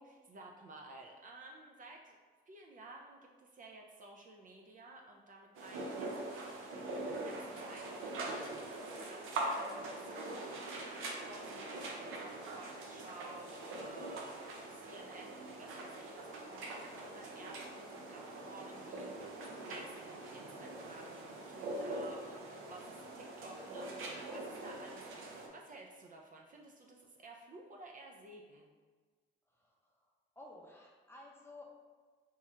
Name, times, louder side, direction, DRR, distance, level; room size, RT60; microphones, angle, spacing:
voice 1, 0.0-2.2 2.5-10.7 11.3-28.7, right 2 dB, 40° right, 0 dB, 0.5 m, -54 dB
sound 1, 5.5-25.5, right 2 dB, 85° right, 0.6 m, -43 dB
voice 2, 24.2-24.5 24.9-25.0 29.5-31.6, left 1 dB, 10° left, -2 dB, 0.7 m, -56 dB
3.0 x 2.3 x 4.3 m, 1.4 s
cardioid pair, 90°, 20 cm